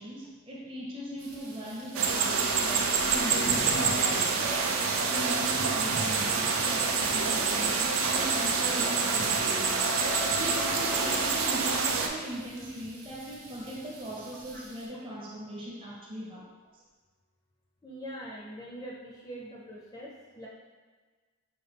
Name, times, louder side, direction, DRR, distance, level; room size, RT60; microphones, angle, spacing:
voice 1, 0.0-4.6 5.1-9.8 10.4-16.8, equal, 25° right, -3 dB, 0.6 m, -39 dB
sound 1, 1.2-14.9, right 1 dB, 85° right, 0.8 m, -46 dB
sound 2, 1.9-12.1, right 5 dB, 60° right, 0.4 m, -27 dB
Wind instrument woodwind instrument, 8.2-12.1, left 9 dB, 80° left, 0.4 m, -42 dB
voice 2, 17.8-20.5, equal, 15° left, -5 dB, 0.4 m, -43 dB
5.2 x 2.2 x 3.4 m, 1.4 s
head